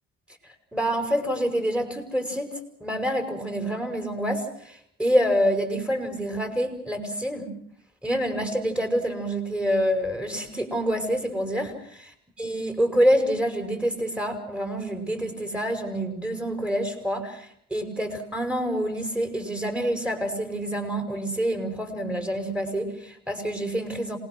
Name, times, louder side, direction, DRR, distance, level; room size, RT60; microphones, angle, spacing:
voice 1, 0.7-2.5 2.8-7.5 8.0-12.0 12.4-24.2, equal, 5° right, 5 dB, 5.6 m, -27 dB
27.5 x 20.5 x 6.3 m, 0.65 s
cardioid pair, 90°, 30 cm